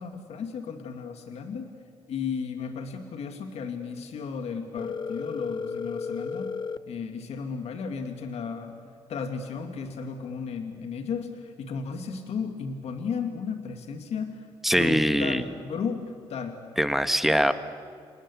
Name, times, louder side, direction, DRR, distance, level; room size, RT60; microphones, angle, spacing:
voice 1, 0.0-1.7 2.1-6.5 6.9-8.8 9.1-14.5 14.7-16.5, left 5 dB, 70° left, 6 dB, 2.2 m, -34 dB
Telephone, 4.8-6.8, left 5 dB, 45° left, 0.9 m, -33 dB
voice 2, 14.6-15.4 16.8-17.5, equal, ahead, 10 dB, 1.5 m, -22 dB
28.0 x 19.0 x 8.5 m, 2.2 s
cardioid pair, 80°, 11 cm